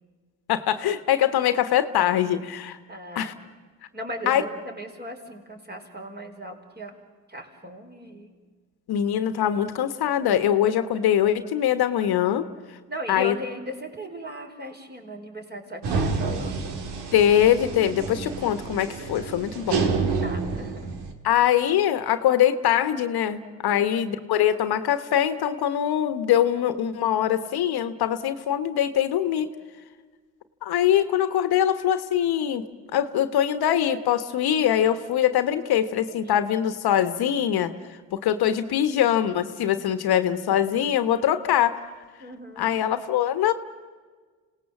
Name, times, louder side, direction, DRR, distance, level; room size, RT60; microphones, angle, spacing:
voice 1, 0.5-2.8 3.1-3.3 4.3-4.4 8.9-12.4 13.1-13.3 17.1-19.8 21.2-29.5 30.6-32.6 32.9-37.7 38.1-41.8 42.6-43.5, left 10 dB, 70° left, 11 dB, 1.3 m, -23 dB
voice 2, 2.9-3.4 3.9-6.9 7.3-8.4 12.9-16.8 20.2-20.8 23.7-24.0 36.1-36.2 42.2-42.7, equal, 25° right, 3 dB, 4.7 m, -37 dB
sound 1, 15.8-21.1, right 4 dB, 85° right, 2.1 m, -28 dB
27.5 x 18.0 x 7.3 m, 1.4 s
supercardioid pair, 65°, 39 cm